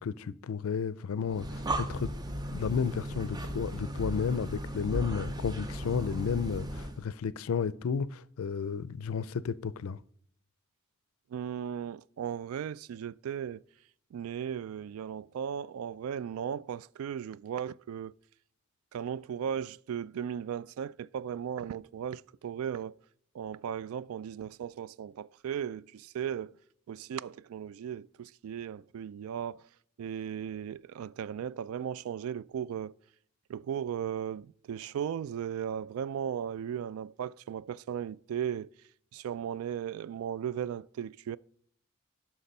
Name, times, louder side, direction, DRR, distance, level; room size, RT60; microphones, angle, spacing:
voice 1, 0.0-2.1 2.5-10.0, left 6 dB, 85° left, 0.4 m, -32 dB
Breathing, 1.3-7.0, right 1 dB, 20° right, 0.6 m, -36 dB
voice 2, 11.3-13.6 14.1-18.1 18.9-23.0 23.3-26.6 26.9-29.6 30.0-32.9 33.5-38.7 39.1-41.4, right 8 dB, 85° right, 0.3 m, -36 dB
10.0 x 6.0 x 5.4 m
head